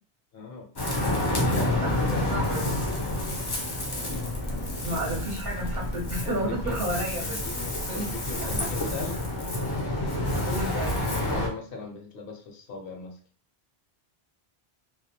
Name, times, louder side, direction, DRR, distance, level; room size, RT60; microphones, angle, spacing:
voice 1, 0.3-0.7 1.3-2.4 3.9-4.2 6.2-6.8 7.0-9.2 11.1-13.2, left 4 dB, 65° left, 2 dB, 0.8 m, -39 dB
Ocean, 0.8-11.5, left 1 dB, 35° left, 0.4 m, -29 dB
voice 2, 2.3-2.7 4.8-7.5 7.9-8.1 8.3-8.5 10.5-11.0, right 1 dB, 60° right, -2 dB, 0.8 m, -32 dB
2.3 x 2.0 x 2.7 m, 0.42 s
omnidirectional pair, 1.1 m